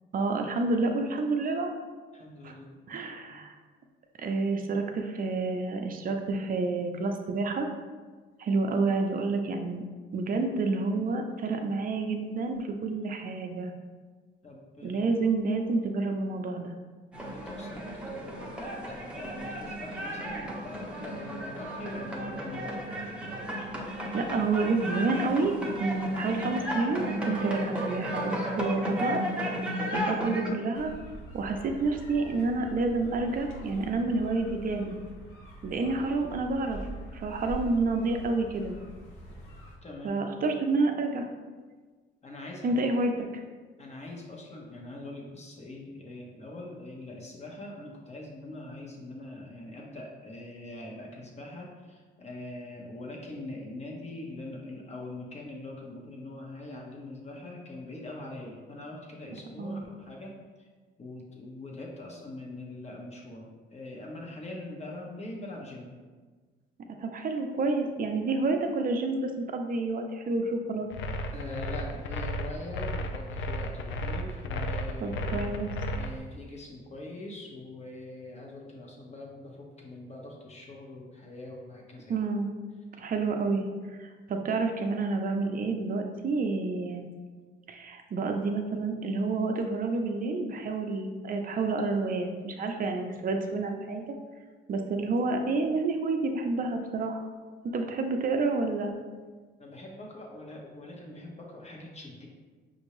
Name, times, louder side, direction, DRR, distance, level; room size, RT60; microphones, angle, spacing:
voice 1, 0.1-1.8 2.4-2.6 2.9-3.6 4.2-7.7 8.4-9.8 10.1-13.7 14.8-16.7 24.1-29.2 29.9-30.9 31.3-35.0 35.6-36.8 37.1-38.8 40.0-41.3 42.6-43.3 59.6-59.9 67.0-70.9 75.0-75.7 82.1-82.5 83.0-83.7 84.0-87.1 87.7-94.2 94.7-97.3 97.6-98.9, right 3 dB, 45° right, 4 dB, 0.6 m, -29 dB
voice 2, 2.1-2.8 3.2-3.4 14.4-15.1 17.2-22.7 35.8-36.1 39.8-40.2 42.2-42.8 43.8-60.7 61.0-65.9 71.3-75.5 75.9-82.2 99.6-102.3, left 2 dB, 35° left, -1 dB, 1.0 m, -43 dB
sound 1, 17.1-30.5, equal, 5° right, 0.8 m, -34 dB
sound 2, 30.7-39.7, right 1 dB, 85° left, 0.9 m, -44 dB
sound 3, 70.9-76.1, equal, 70° left, 0.4 m, -33 dB
5.5 x 2.6 x 3.1 m, 1.4 s
cardioid pair, 90°, 20 cm